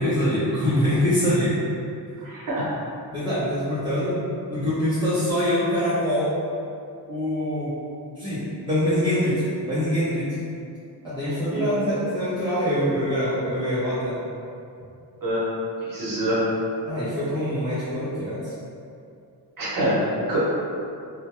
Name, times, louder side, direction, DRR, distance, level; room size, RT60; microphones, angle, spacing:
voice 1, 0.0-1.6 3.1-4.2 4.5-6.3 7.1-7.7 8.2-10.4 11.0-14.2 16.8-18.5, equal, 10° right, -13 dB, 0.4 m, -24 dB
voice 2, 2.2-2.7 11.2-11.7 15.2-15.5 15.8-16.4 19.6-20.4, right 1 dB, 50° right, -8 dB, 0.8 m, -25 dB
2.2 x 2.0 x 2.9 m, 2.5 s
wide cardioid pair, 155°, 43 cm